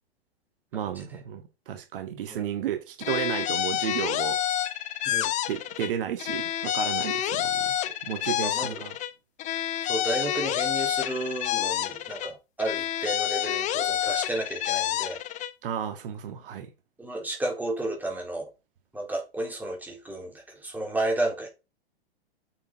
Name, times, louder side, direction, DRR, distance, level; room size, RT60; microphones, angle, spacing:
voice 1, 0.7-4.4 5.5-7.8 8.1-8.9 15.6-16.7, right 9 dB, 55° right, 1.8 m, -33 dB
sound 1, 3.0-5.9 6.2-9.1 9.4-12.3 12.6-15.5, left 12 dB, 25° left, 0.7 m, -28 dB
voice 2, 8.4-8.8 9.9-15.2 17.0-18.5 18.9-21.5, right 1 dB, 5° right, 3.8 m, -32 dB
9.0 x 6.7 x 4.1 m
figure-of-eight pair, 110°, 32 cm